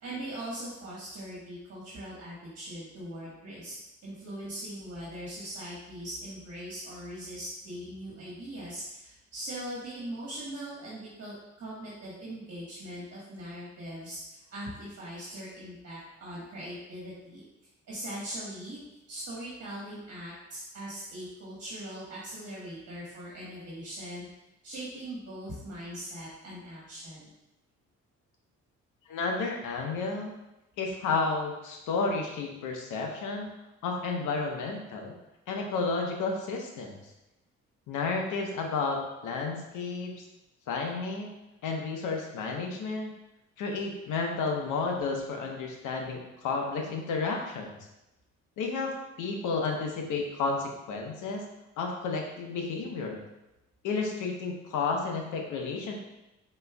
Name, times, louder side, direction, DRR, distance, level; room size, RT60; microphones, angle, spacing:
voice 1, 0.0-3.7 4.0-17.4 17.9-18.8 19.1-24.3 24.6-27.3, right 1 dB, 55° right, -6 dB, 1.4 m, -40 dB
voice 2, 29.1-30.3 30.8-33.5 33.8-35.1 35.5-37.0 37.9-40.1 40.7-41.3 41.6-43.1 43.6-47.8 48.6-48.9 49.2-51.5 51.8-53.2 53.8-55.9, left 4 dB, 85° left, 1 dB, 0.9 m, -31 dB
5.1 x 4.3 x 2.3 m, 0.93 s
cardioid pair, 90°, 30 cm